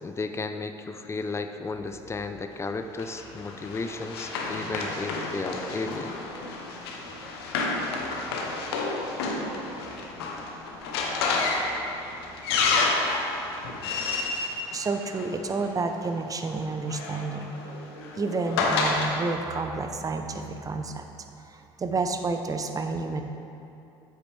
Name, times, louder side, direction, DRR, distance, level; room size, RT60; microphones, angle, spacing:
voice 1, 0.0-6.1, left 3 dB, 20° left, 8 dB, 0.5 m, -34 dB
Run, 3.0-15.6 16.6-19.1, left 3 dB, 90° left, 0.8 m, -30 dB
voice 2, 6.3-6.7 14.1-14.2 14.7-17.5 18.1-21.1 21.5-23.2, right 3 dB, 30° right, 6 dB, 0.6 m, -30 dB
8.2 x 5.9 x 3.3 m, 2.8 s
hypercardioid pair, 70°, 13 cm